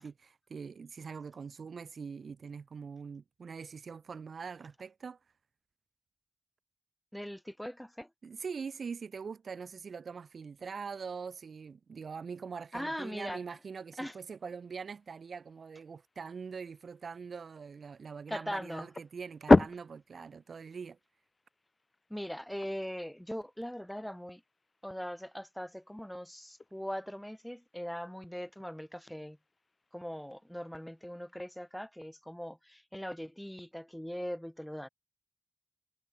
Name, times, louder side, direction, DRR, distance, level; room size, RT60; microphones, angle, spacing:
voice 1, 0.0-5.2 8.2-21.0, right 5 dB, 80° right, 1.9 m, -43 dB
voice 2, 7.1-8.1 12.7-13.4 14.0-14.2 18.3-18.9 22.1-24.4 24.8-29.4 29.9-34.9, equal, 5° left, 3.6 m, -40 dB
sound 1, 12.4-31.7, left 3 dB, 40° left, 0.4 m, -36 dB
wide cardioid pair, 80°, 0 cm